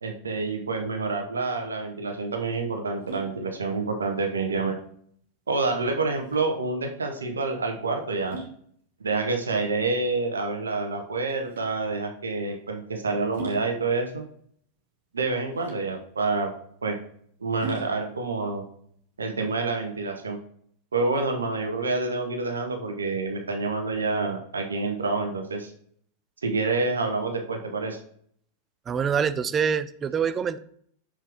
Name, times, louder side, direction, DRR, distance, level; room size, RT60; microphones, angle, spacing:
voice 1, 0.0-4.8 5.5-8.4 9.0-14.2 15.1-16.5 16.8-17.0 17.4-18.6 19.2-20.4 20.9-25.7 26.4-28.0, right 3 dB, 75° right, 5 dB, 1.0 m, -28 dB
sound 1, 1.5-20.0, right 4 dB, 60° right, 2.1 m, -45 dB
voice 2, 28.9-30.6, right 7 dB, 25° right, 14 dB, 0.5 m, -25 dB
6.3 x 5.9 x 3.5 m, 0.63 s
figure-of-eight pair, 90°, 0 cm